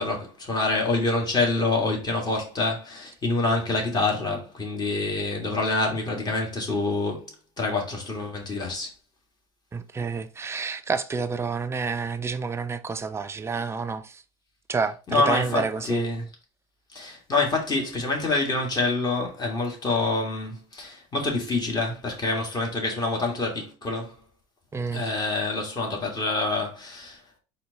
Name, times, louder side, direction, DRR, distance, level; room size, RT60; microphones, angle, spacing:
voice 1, 0.0-7.3 7.6-8.9 15.1-16.2 16.9-24.1 24.9-27.2, left 3 dB, 25° left, 1.8 m, -26 dB
voice 2, 9.7-14.2 14.7-16.0 24.7-25.0, right 4 dB, 15° right, 0.5 m, -29 dB
4.2 x 2.8 x 4.0 m
supercardioid pair, 100°, 15 cm